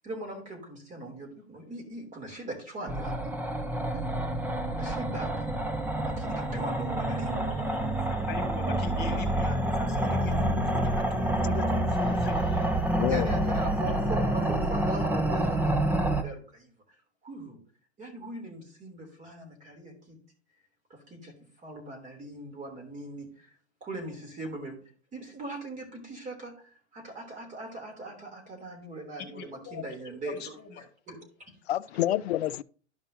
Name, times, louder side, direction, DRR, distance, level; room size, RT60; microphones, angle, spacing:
voice 1, 0.0-3.3 3.9-4.1 4.7-5.5 6.2-7.9 13.1-16.7 17.2-17.6 18.0-20.2 20.9-23.5 23.8-24.8 25.1-30.5 31.1-31.5, right 2 dB, 20° right, 3.2 m, -40 dB
sound 1, 2.9-16.2, right 1 dB, 5° right, 0.8 m, -28 dB
voice 2, 8.1-12.6 13.6-13.7 29.2-30.8, left 5 dB, 30° left, 2.1 m, -42 dB
voice 3, 12.0-12.6 13.0-13.3 31.7-32.6, left 13 dB, 65° left, 0.5 m, -29 dB
12.5 x 5.4 x 2.8 m
hypercardioid pair, 115°, 35 cm